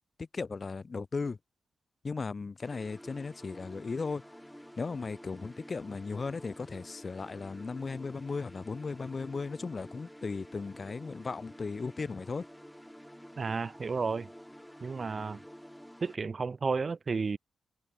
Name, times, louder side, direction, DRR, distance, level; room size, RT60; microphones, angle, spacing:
voice 1, 0.2-1.4 2.0-4.2 4.8-12.4, left 4 dB, 45° left, 1.1 m, -36 dB
sound 1, 2.6-16.2, equal, 5° left, 3.7 m, -50 dB
voice 2, 13.4-14.3 14.8-15.4 16.0-17.4, right 4 dB, 45° right, 1.2 m, -32 dB
supercardioid pair, 55°, 0 cm